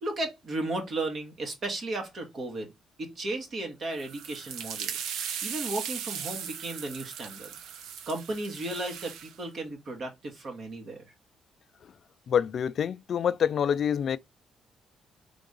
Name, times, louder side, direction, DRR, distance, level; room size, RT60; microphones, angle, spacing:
voice 1, 0.0-2.7 3.0-5.0 5.4-7.5 8.1-11.1, right 2 dB, 55° right, 1.9 m, -34 dB
sound 1, 3.9-9.3, right 8 dB, 85° right, 0.6 m, -38 dB
voice 2, 12.3-14.2, left 8 dB, 60° left, 0.3 m, -26 dB
3.7 x 3.6 x 3.8 m
cardioid pair, 90°, 0 cm